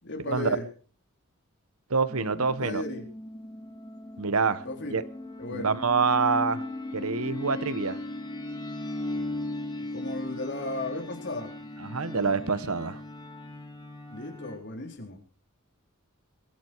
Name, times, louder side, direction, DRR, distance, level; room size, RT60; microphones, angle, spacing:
voice 1, 0.0-0.7 2.6-3.1 4.6-5.0 5.4-5.8 9.9-11.5 14.1-15.2, left 2 dB, 55° left, 4.0 m, -35 dB
voice 2, 1.9-2.8 4.2-4.6 4.9-5.0 5.5-6.6 6.9-8.0 11.8-13.0, right 5 dB, 75° right, 1.1 m, -26 dB
sound 1, 2.1-14.6, left 2 dB, 20° left, 3.1 m, -37 dB
21.5 x 13.0 x 4.6 m
head